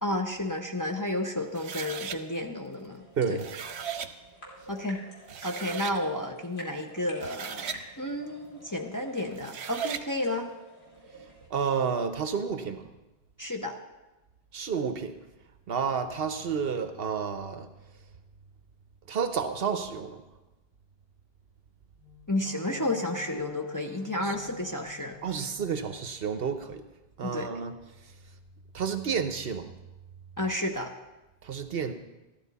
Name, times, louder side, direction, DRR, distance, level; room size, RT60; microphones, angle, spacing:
voice 1, 0.0-3.0 3.3-3.4 4.7-5.0 5.4-10.5 13.4-13.7 22.3-25.2 27.2-27.5 30.4-30.9, left 1 dB, 20° left, 1 dB, 0.7 m, -31 dB
sound 1, 1.5-2.2 3.2-4.1 4.9-5.0 5.3-6.0 7.0-7.8 9.3-10.1, right 7 dB, 85° right, 1.0 m, -37 dB
sound 2, 2.0-11.5, right 1 dB, 70° left, 2.9 m, -50 dB
voice 2, 11.5-12.9 14.5-15.1 15.7-17.7 19.1-20.2 24.2-24.4 25.2-26.8 27.2-27.7 28.7-29.7 31.4-31.9, right 6 dB, 65° right, 9 dB, 1.0 m, -30 dB
Wind instrument woodwind instrument, 22.0-26.1, left 9 dB, 5° right, 1.0 m, -49 dB
14.0 x 12.0 x 4.1 m, 1.0 s
omnidirectional pair, 1.1 m